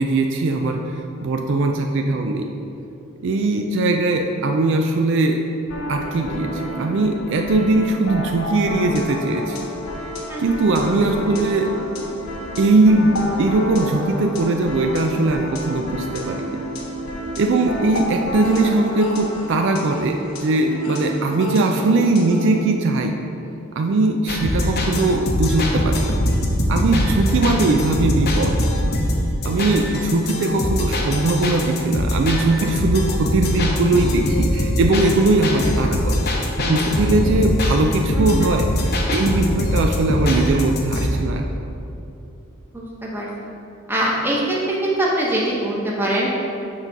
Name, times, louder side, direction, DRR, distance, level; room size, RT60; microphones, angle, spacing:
voice 1, 0.0-2.5 3.2-5.4 5.9-9.7 10.4-11.7 12.6-16.6 17.4-23.2 23.8-26.1 26.7-28.6 29.4-36.3 36.7-41.7, right 2 dB, 55° right, 4 dB, 0.4 m, -20 dB
sound 1, 5.7-22.6, equal, 80° left, 1.0 m, -30 dB
sound 2, 24.3-41.1, left 1 dB, 45° left, 0.8 m, -22 dB
voice 2, 42.7-43.3 43.9-44.6 44.8-46.3, right 1 dB, 10° right, -4 dB, 1.0 m, -22 dB
6.6 x 4.0 x 5.9 m, 2.8 s
head